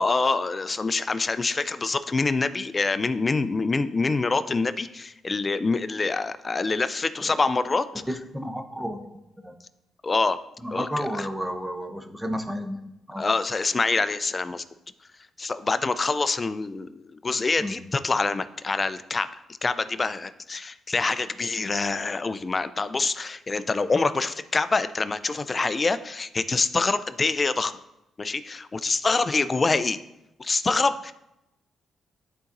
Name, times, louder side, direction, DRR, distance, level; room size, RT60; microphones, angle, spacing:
voice 1, 0.0-7.9 10.0-10.4 10.7-11.3 13.2-14.6 15.4-19.3 19.6-27.7 28.2-30.0 30.4-31.1, left 3 dB, 30° left, 13 dB, 0.4 m, -25 dB
voice 2, 8.1-9.1 9.4-9.5 10.6-12.8 13.1-13.2 17.6-17.8, equal, 5° right, 6 dB, 0.8 m, -32 dB
11.5 x 4.0 x 2.6 m, 0.90 s
cardioid pair, 85°, 0 cm